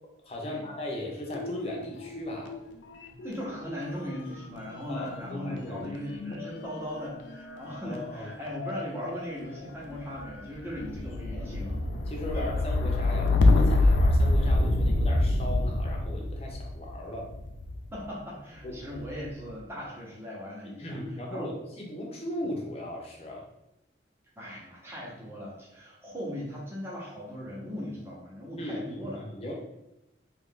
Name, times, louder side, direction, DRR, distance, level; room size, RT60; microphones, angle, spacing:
voice 1, 0.3-2.6 4.9-5.9 7.8-8.3 11.0-11.5 12.1-17.3 18.6-18.9 20.6-23.5 28.6-29.5, left 1 dB, 30° left, -1 dB, 0.7 m, -37 dB
sound 1, 1.3-2.6 2.9-17.9 18.7-19.3, left 2 dB, 70° left, 0.4 m, -27 dB
voice 2, 3.2-11.9 12.3-12.6 17.9-21.0 21.3-21.5 24.4-29.2, equal, 15° right, -6 dB, 0.9 m, -38 dB
2.8 x 2.5 x 3.7 m, 0.89 s
head